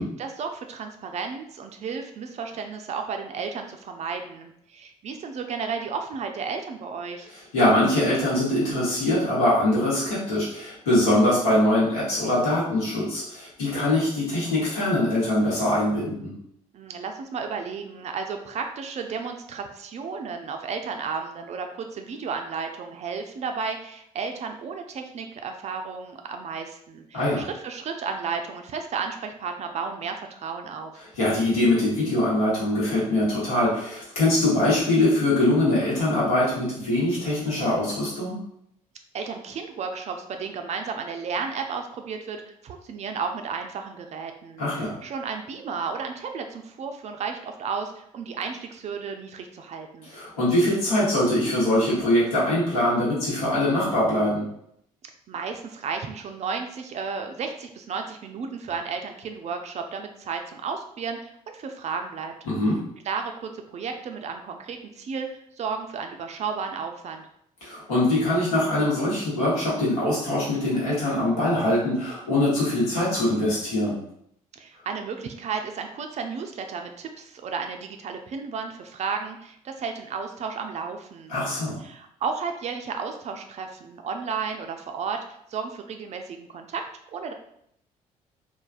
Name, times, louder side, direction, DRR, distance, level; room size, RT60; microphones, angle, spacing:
voice 1, 0.0-7.3 16.7-30.9 39.1-44.6 45.0-50.1 55.3-62.3 63.1-65.3 65.6-67.3 74.6-81.4 81.8-85.2 85.5-87.3, right 5 dB, 40° right, 5 dB, 0.4 m, -33 dB
voice 2, 7.5-16.3 27.1-27.4 31.2-38.4 44.6-44.9 50.1-54.4 62.4-62.8 67.6-74.0 81.3-81.8, left 1 dB, 75° left, -7 dB, 1.0 m, -23 dB
3.2 x 2.1 x 2.4 m, 0.72 s
figure-of-eight pair, 45°, 19 cm